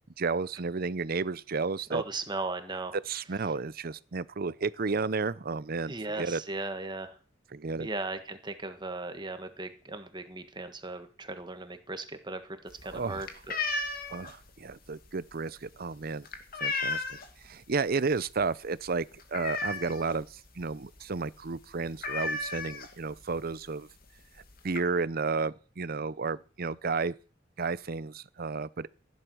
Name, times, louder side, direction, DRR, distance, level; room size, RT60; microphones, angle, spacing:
voice 1, 0.2-2.0 3.1-6.4 7.5-7.9 12.8-13.2 14.1-16.3 16.6-23.9 24.6-27.1 27.6-28.9, right 4 dB, 50° right, 0.7 m, -32 dB
voice 2, 1.9-3.0 5.9-7.1 7.8-13.6, right 2 dB, 25° right, 1.5 m, -37 dB
sound 1, 12.7-17.4 17.8-18.1 18.4-18.5 18.9-20.2 20.6-20.7 21.0-21.2 21.5-21.6 22.0-23.2 24.0-24.1 24.4-24.8, left 3 dB, 50° left, 2.3 m, -34 dB
16.0 x 11.0 x 6.3 m
head